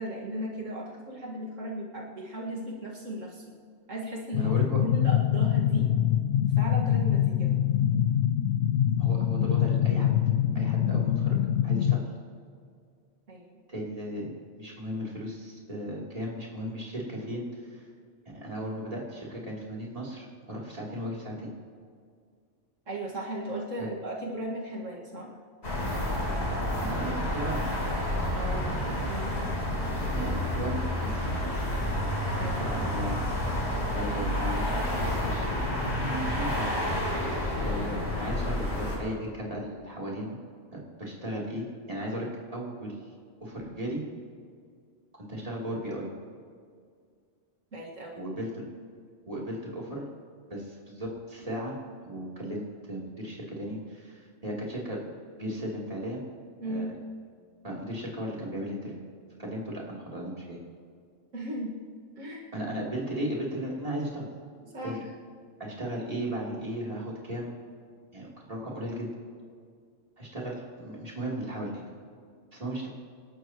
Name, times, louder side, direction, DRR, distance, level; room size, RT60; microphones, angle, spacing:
voice 1, 0.0-3.4 3.9-4.5 4.8-5.9 6.6-7.5 13.3-13.6 22.9-25.3 28.3-29.3 32.4-32.6 47.7-48.2 56.6-56.9 61.3-61.8 62.2-62.4 64.6-65.0, right 1 dB, 80° right, -3 dB, 2.3 m, -36 dB
sound 1, 4.3-12.0, left 10 dB, 80° left, 1.0 m, -24 dB
voice 2, 4.4-4.8 9.0-10.1 10.5-11.4 11.6-12.0 13.7-17.8 18.3-21.5 26.8-27.6 30.1-31.3 31.8-33.2 33.9-35.6 35.9-36.7 37.6-40.4 40.7-43.0 43.4-44.0 45.2-46.1 48.2-48.6 49.3-50.1 50.5-51.8 52.0-55.0 55.4-56.2 56.6-57.0 57.6-59.0 59.4-60.6 62.5-64.3 64.8-65.0 65.6-67.5 68.1-69.1 70.2-71.8 72.5-72.9, equal, 30° right, -4 dB, 3.5 m, -36 dB
sound 2, 25.6-39.0, left 1 dB, 55° left, 4.0 m, -29 dB
27.0 x 12.5 x 3.1 m, 2.1 s
omnidirectional pair, 1.3 m